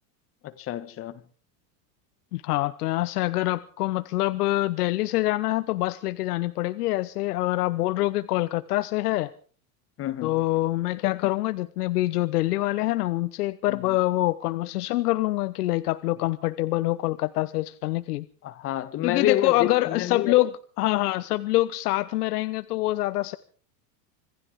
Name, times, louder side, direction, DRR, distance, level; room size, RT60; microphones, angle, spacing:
voice 1, 0.4-1.2 10.0-10.3 13.7-14.0 18.4-20.3, left 12 dB, 30° left, 1.4 m, -29 dB
voice 2, 2.3-9.3 10.2-18.3 19.0-23.4, left 17 dB, 90° left, 0.9 m, -25 dB
26.0 x 15.5 x 3.6 m
supercardioid pair, 150°, 45 cm